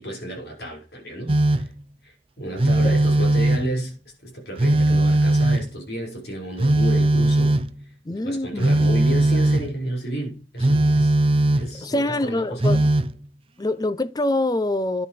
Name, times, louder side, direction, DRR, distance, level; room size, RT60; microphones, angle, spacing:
voice 1, 0.0-1.7 2.0-3.9 4.2-7.6 8.1-11.1 11.6-12.9, right 1 dB, 65° left, 5.6 m, -32 dB
Telephone, 1.3-1.8 2.6-3.8 4.6-5.8 6.6-7.8 8.6-9.7 10.6-11.8 12.6-13.2, right 1 dB, 30° right, 0.6 m, -19 dB
voice 2, 8.0-8.7 11.7-12.8 13.6-15.1, left 1 dB, 20° left, 0.5 m, -25 dB
10.5 x 6.5 x 5.1 m
head